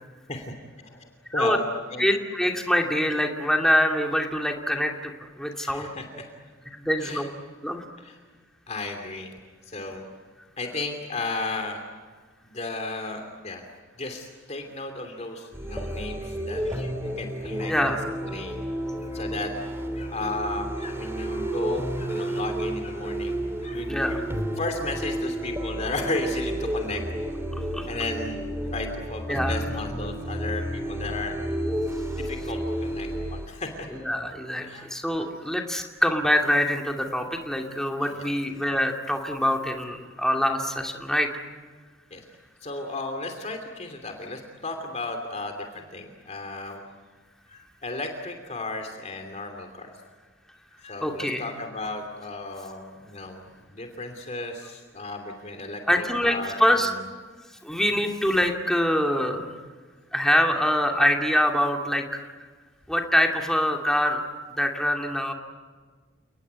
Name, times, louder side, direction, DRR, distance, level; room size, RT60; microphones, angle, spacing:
voice 1, 0.3-1.6 1.9-2.1 5.6-6.3 7.0-7.3 8.0-8.2 8.7-9.3 9.6-10.1 10.6-11.8 12.4-13.6 14.0-18.6 19.0-19.6 19.9-24.3 24.6-27.0 27.8-28.4 28.7-31.4 31.6-33.9 34.6-34.9 38.0-38.4 42.1-42.2 42.6-46.8 47.5-49.9 50.8-57.0 57.9-58.1, left 2 dB, 35° left, 4 dB, 2.8 m, -34 dB
voice 2, 2.0-5.1 5.4-5.9 6.7-7.2 7.6-7.8 17.7-18.1 23.9-24.2 27.7-27.9 29.3-29.5 33.9-41.3 51.0-51.5 55.9-56.9 57.6-59.5 60.1-62.3 62.9-64.2 64.6-65.3, equal, 5° left, 2 dB, 2.5 m, -24 dB
sound 1, 15.5-33.5, right 1 dB, 15° right, 2.9 m, -31 dB
30.0 x 20.0 x 9.6 m, 1.5 s
head